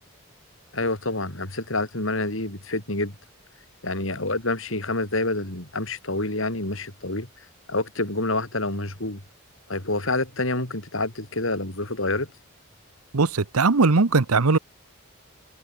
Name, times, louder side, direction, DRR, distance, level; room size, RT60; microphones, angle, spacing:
voice 1, 0.7-3.2 3.8-7.3 7.7-9.2 9.7-12.3, left 2 dB, 65° left, 4.1 m, -27 dB
voice 2, 13.1-14.6, right 4 dB, 90° right, 0.9 m, -19 dB
head